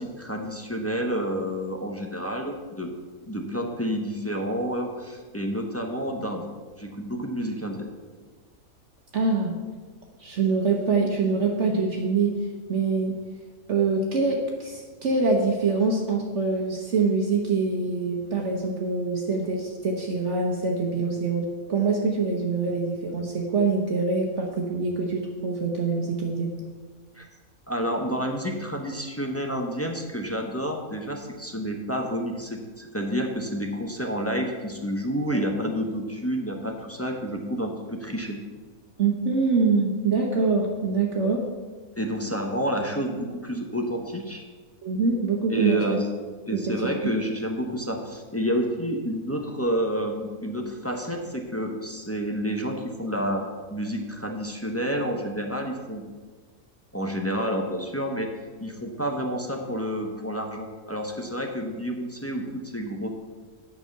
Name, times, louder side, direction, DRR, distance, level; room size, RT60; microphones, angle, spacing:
voice 1, 0.0-2.9 3.3-6.5 6.8-7.9 27.1-27.3 27.7-38.4 42.0-44.4 45.5-46.0 46.5-53.4 53.7-56.0 56.9-58.3 58.6-63.1, equal, 15° left, 2 dB, 0.7 m, -29 dB
voice 2, 9.1-9.5 10.2-12.4 12.7-13.2 13.7-26.5 35.3-35.4 39.0-41.5 44.8-46.0 46.5-46.7 47.0-47.1, right 4 dB, 55° right, 0 dB, 1.2 m, -24 dB
9.2 x 5.6 x 6.7 m, 1.4 s
omnidirectional pair, 1.5 m